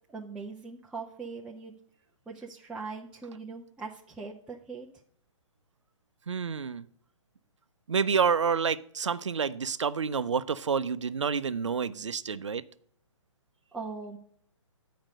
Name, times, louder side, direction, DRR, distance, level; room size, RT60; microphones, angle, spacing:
voice 1, 0.1-1.7 2.3-4.9 13.7-14.2, right 4 dB, 5° right, -2 dB, 0.5 m, -40 dB
voice 2, 6.3-6.8 7.9-12.6, right 6 dB, 65° right, 16 dB, 0.6 m, -28 dB
8.8 x 5.1 x 6.2 m, 0.64 s
figure-of-eight pair, 130°, 16 cm